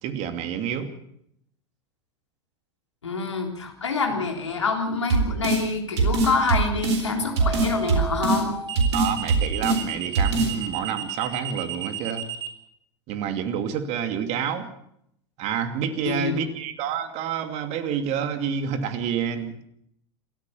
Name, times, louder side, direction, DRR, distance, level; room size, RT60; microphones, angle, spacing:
voice 1, 0.0-0.9 8.9-12.2 13.1-14.7 15.4-19.7, right 8 dB, 50° right, 8 dB, 2.6 m, -28 dB
voice 2, 3.0-8.5 16.0-16.5, left 4 dB, 85° left, 3 dB, 3.7 m, -26 dB
sound 1, 4.1-4.4 7.4-12.5, right 8 dB, 35° right, 4.9 m, -33 dB
sound 2, 5.1-5.6 6.0-7.0 7.4-8.4 8.8-9.8 10.1-10.5, right 3 dB, 70° right, 4.0 m, -22 dB
27.5 x 13.5 x 7.1 m, 0.74 s
hypercardioid pair, 85°, 15 cm